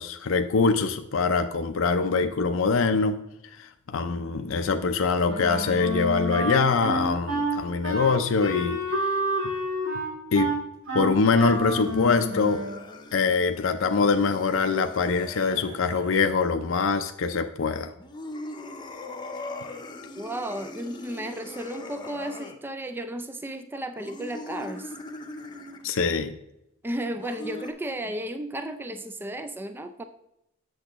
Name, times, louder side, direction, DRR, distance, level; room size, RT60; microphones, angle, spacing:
voice 1, 0.0-3.2 3.6-8.8 10.3-10.5 10.9-12.6 13.1-17.9 25.8-26.3, left 4 dB, 75° left, 7 dB, 0.5 m, -24 dB
Wind instrument woodwind instrument, 5.3-12.8, equal, 80° right, 3.0 m, -29 dB
sound 1, 11.3-16.2 18.0-22.6 24.0-25.9 27.2-27.7, left 2 dB, 20° left, 0.7 m, -41 dB
voice 2, 20.2-24.9 26.8-30.0, right 1 dB, 10° right, 9 dB, 0.4 m, -34 dB
8.2 x 7.0 x 3.0 m, 0.84 s
head